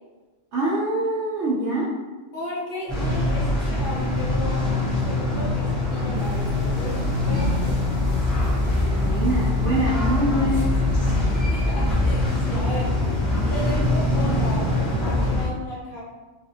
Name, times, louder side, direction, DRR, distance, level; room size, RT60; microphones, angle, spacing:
voice 1, 0.5-1.9 8.7-11.0, right 1 dB, 65° right, -5 dB, 0.8 m, -25 dB
voice 2, 2.3-8.0 11.5-12.9 13.5-16.0, left 2 dB, 55° left, -5 dB, 0.7 m, -35 dB
sound 1, 2.9-15.5, left 2 dB, ahead, 0.4 m, -23 dB
sound 2, 6.1-12.3, equal, 30° right, 1.0 m, -38 dB
2.5 x 2.3 x 2.6 m, 1.2 s
omnidirectional pair, 1.3 m